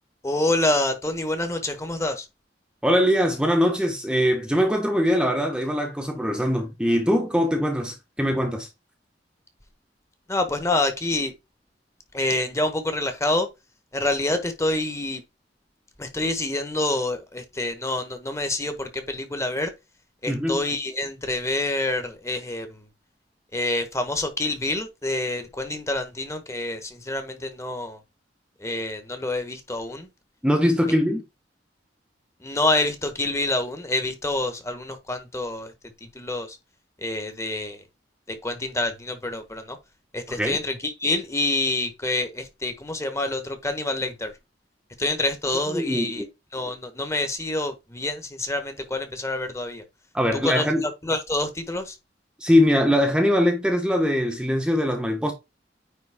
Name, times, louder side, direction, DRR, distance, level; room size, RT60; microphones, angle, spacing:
voice 1, 0.2-2.3 10.3-11.3 12.1-13.5 13.9-15.2 16.0-19.7 20.2-22.8 23.5-28.0 28.6-30.1 32.4-35.7 36.0-36.6 37.0-37.8 38.3-39.8 40.1-44.3 45.0-46.2 46.5-49.8 50.3-51.9, left 2 dB, 15° left, 1.3 m, -27 dB
voice 2, 2.8-8.7 20.3-20.6 30.4-31.2 40.3-40.6 45.7-46.3 50.1-50.9 52.4-55.3, equal, 5° right, 1.0 m, -22 dB
9.3 x 3.7 x 3.6 m
head